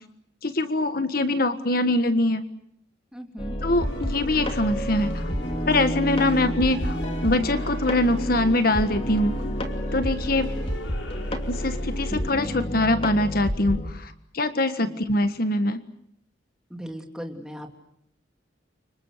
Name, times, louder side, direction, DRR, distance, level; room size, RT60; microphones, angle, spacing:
voice 1, 0.4-2.4 3.6-5.3 5.7-9.3 9.9-10.5 11.5-15.8, left 2 dB, 50° left, 9 dB, 1.5 m, -23 dB
voice 2, 3.1-3.6 14.8-15.0 16.7-17.7, equal, 5° right, 3 dB, 3.0 m, -38 dB
sound 1, 3.4-13.9, equal, 30° left, 2.7 m, -29 dB
sound 2, 3.8-12.3, left 1 dB, 90° left, 4.6 m, -38 dB
30.0 x 26.0 x 6.7 m, 0.72 s
head